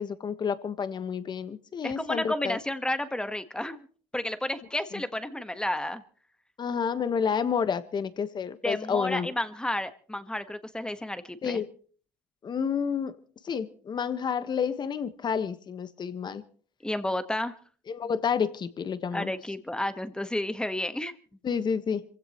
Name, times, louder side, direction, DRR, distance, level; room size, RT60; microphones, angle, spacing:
voice 1, 0.0-2.6 6.6-9.3 11.4-11.7 12.4-13.2 13.4-16.4 17.9-19.3 21.4-22.0, left 6 dB, 40° left, 12 dB, 1.4 m, -30 dB
voice 2, 1.8-3.9 4.1-6.0 8.6-11.6 16.8-17.5 19.1-21.2, left 1 dB, 5° left, 10 dB, 1.4 m, -31 dB
26.5 x 16.0 x 3.1 m, 0.44 s
cardioid pair, 95°, 12 cm